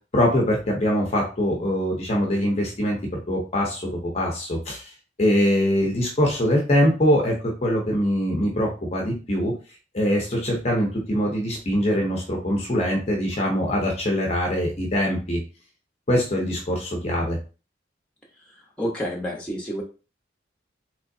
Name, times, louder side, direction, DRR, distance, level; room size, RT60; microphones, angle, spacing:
voice 1, 0.1-3.0 3.3-4.9 5.2-9.5 9.9-15.4 16.1-17.4, equal, 35° left, 0 dB, 0.7 m, -23 dB
voice 2, 18.5-19.8, equal, 5° left, -3 dB, 0.9 m, -30 dB
3.7 x 3.0 x 2.6 m, 0.34 s
head